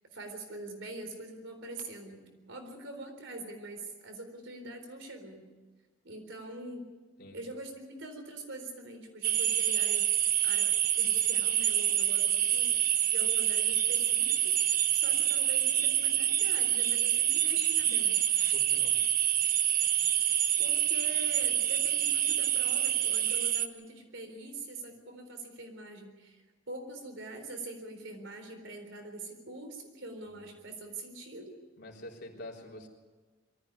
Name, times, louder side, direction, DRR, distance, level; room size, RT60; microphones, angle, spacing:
voice 1, 0.1-5.4 6.0-6.9 7.3-10.1 10.4-10.7 11.0-12.7 13.1-18.2 20.6-31.5, right 2 dB, 65° right, 5 dB, 4.0 m, -44 dB
sound 1, 9.2-23.7, right 11 dB, 45° right, 1.0 m, -27 dB
voice 2, 18.5-19.0 30.3-30.5 31.8-32.9, left 1 dB, 55° left, -1 dB, 3.9 m, -46 dB
23.0 x 14.5 x 9.7 m, 1.3 s
head